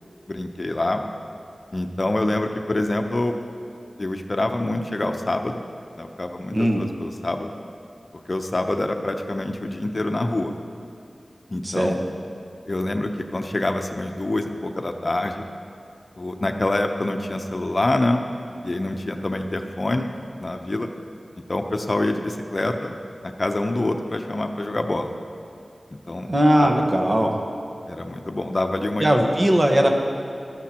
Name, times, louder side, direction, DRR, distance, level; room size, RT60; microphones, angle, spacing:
voice 1, 0.3-1.0 1.7-3.3 4.0-5.6 6.0-7.5 8.3-10.5 11.5-12.0 12.7-15.5 16.2-18.2 18.6-20.1 20.4-20.9 21.5-23.0 23.2-25.1 26.1-26.3 26.6-26.7 27.9-29.4, left 2 dB, 50° left, 5 dB, 0.7 m, -26 dB
voice 2, 6.5-6.8 11.6-11.9 26.3-27.3 29.0-29.9, equal, 40° right, 2 dB, 1.3 m, -19 dB
14.5 x 12.5 x 2.9 m, 2.6 s
wide cardioid pair, 55°, 0 cm